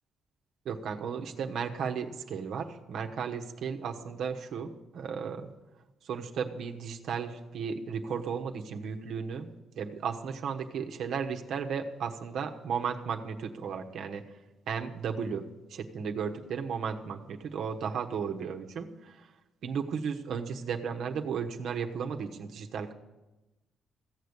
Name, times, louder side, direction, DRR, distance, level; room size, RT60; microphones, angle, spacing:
voice 1, 0.6-5.5 6.0-14.4 14.7-19.3 19.6-22.9, right 6 dB, 70° right, 4 dB, 1.1 m, -35 dB
15.5 x 6.9 x 8.1 m, 1.1 s
cardioid pair, 90°, 0 cm